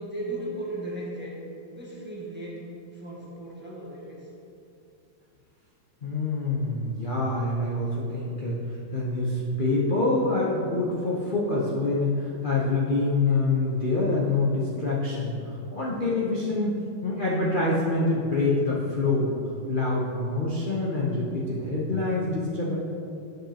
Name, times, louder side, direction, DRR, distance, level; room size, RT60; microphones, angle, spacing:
voice 1, 0.0-1.4 1.7-2.7 2.9-4.3, right 1 dB, 5° right, -6 dB, 1.0 m, -36 dB
voice 2, 6.0-8.6 8.9-19.3 19.7-22.7, left 2 dB, 80° left, -5 dB, 0.4 m, -26 dB
9.9 x 6.0 x 2.9 m, 2.7 s
omnidirectional pair, 2.3 m